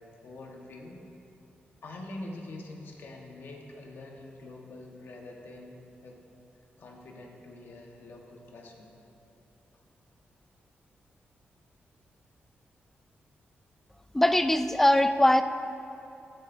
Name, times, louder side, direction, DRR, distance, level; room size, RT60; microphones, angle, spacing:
voice 1, 0.2-1.0 1.8-6.2 6.8-8.9, left 2 dB, 65° left, 0 dB, 1.3 m, -45 dB
voice 2, 14.1-15.4, left 1 dB, 10° left, 10 dB, 0.4 m, -21 dB
15.0 x 10.0 x 2.7 m, 2.9 s
wide cardioid pair, 130°, 4 cm